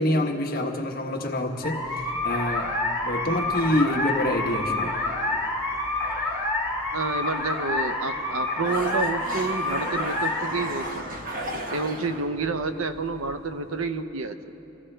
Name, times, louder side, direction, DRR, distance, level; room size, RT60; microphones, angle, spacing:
voice 1, 0.0-2.7 3.1-4.9, left 1 dB, 45° left, 1 dB, 1.3 m, -26 dB
sound 1, 1.6-13.9, left 2 dB, 10° right, 1.8 m, -28 dB
sound 2, 4.8-5.4 6.0-6.1 7.0-8.0 8.3-12.3, right 1 dB, 45° right, 1.2 m, -35 dB
voice 2, 6.9-11.1 11.7-14.4, right 4 dB, 80° right, 9 dB, 0.7 m, -29 dB
26.0 x 15.0 x 3.3 m, 3.0 s
head